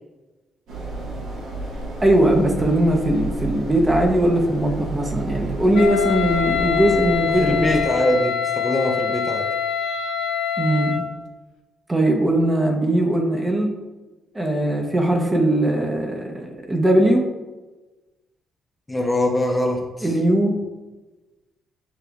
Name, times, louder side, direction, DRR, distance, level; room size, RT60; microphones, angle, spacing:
sound 1, 0.7-7.8, right 2 dB, 90° right, 1.3 m, -31 dB
voice 1, 2.0-7.7 10.6-11.0 11.9-13.7 14.3-17.2 20.0-20.6, right 1 dB, 20° right, 2 dB, 0.8 m, -20 dB
Wind instrument woodwind instrument, 5.7-11.1, left 8 dB, 85° left, 0.4 m, -24 dB
voice 2, 7.4-9.5 18.9-20.1, left 1 dB, 15° left, 1 dB, 0.6 m, -23 dB
6.8 x 3.2 x 2.4 m, 1.2 s
cardioid pair, 90°, 0 cm